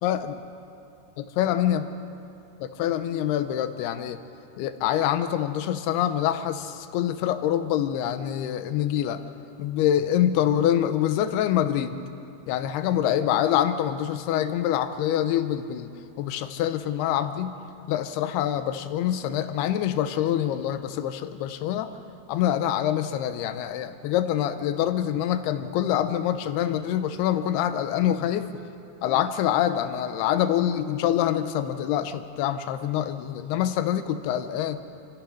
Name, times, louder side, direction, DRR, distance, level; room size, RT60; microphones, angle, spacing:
voice 1, 0.0-0.4 1.4-1.9 2.6-4.2 4.6-9.2 9.6-12.0 12.5-15.9 16.2-17.6 17.9-22.0 22.3-28.5 29.0-34.8, left 11 dB, 85° left, 10 dB, 2.9 m, -25 dB
28.0 x 15.5 x 6.4 m, 2.6 s
omnidirectional pair, 4.5 m